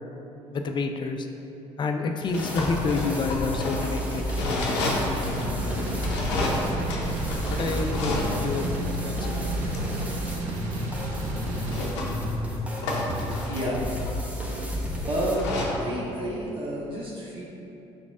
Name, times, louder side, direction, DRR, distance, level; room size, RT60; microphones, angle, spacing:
voice 1, 0.5-1.3 1.8-6.5 7.5-8.7 9.0-9.4, left 4 dB, 35° left, 4 dB, 0.4 m, -30 dB
sound 1, 2.2-15.9, left 1 dB, 90° left, 0.6 m, -32 dB
sound 2, 2.3-15.4, equal, 10° right, 0.8 m, -32 dB
sound 3, 5.3-11.9, right 2 dB, 70° right, 0.6 m, -33 dB
voice 2, 13.5-13.8 15.1-15.4 15.8-17.4, right 1 dB, 40° right, -5 dB, 0.9 m, -30 dB
4.9 x 4.0 x 2.4 m, 2.9 s
hypercardioid pair, 60°, 14 cm